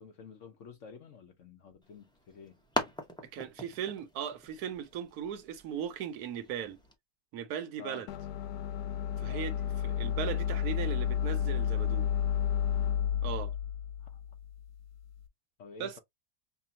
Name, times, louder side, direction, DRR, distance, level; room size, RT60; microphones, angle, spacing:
voice 1, 0.0-2.6 7.8-8.0 9.2-9.5 14.0-14.2 15.6-16.0, left 6 dB, 55° left, 1.1 m, -50 dB
sound 1, 1.8-6.9, left 1 dB, 5° left, 0.6 m, -41 dB
voice 2, 3.2-6.8 7.3-8.1 9.2-12.1 13.2-13.5 15.8-16.0, right 8 dB, 75° right, 1.2 m, -38 dB
sound 2, 8.1-15.2, left 9 dB, 85° left, 1.2 m, -32 dB
5.8 x 2.2 x 2.8 m
omnidirectional pair, 1.7 m